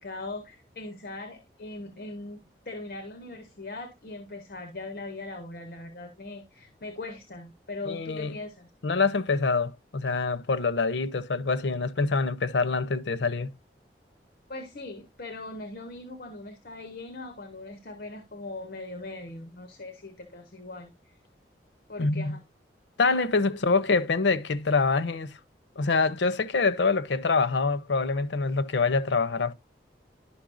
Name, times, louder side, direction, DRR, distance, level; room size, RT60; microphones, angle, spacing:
voice 1, 0.0-8.7 14.5-21.2 21.9-22.4 23.5-23.6, left 2 dB, 55° left, 1.0 m, -40 dB
voice 2, 7.9-8.4 8.8-13.5 22.0-22.4 23.0-25.4 25.8-29.5, left 4 dB, 85° left, 0.6 m, -25 dB
11.5 x 5.4 x 2.5 m
head